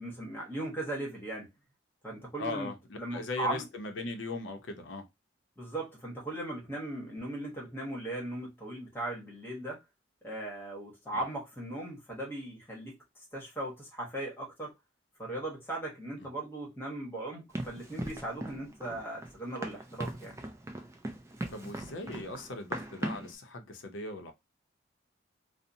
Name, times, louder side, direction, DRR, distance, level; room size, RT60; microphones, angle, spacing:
voice 1, 0.0-1.5 2.0-2.7 3.0-3.6 5.6-9.8 10.2-13.0 13.3-14.7 15.2-20.3, right 1 dB, 10° left, 1.0 m, -38 dB
voice 2, 2.4-5.1 11.1-11.2 16.2-16.3 21.5-24.3, left 2 dB, 75° left, 0.6 m, -39 dB
Run, 17.5-23.3, right 1 dB, 15° right, 0.3 m, -39 dB
2.7 x 2.0 x 2.6 m
head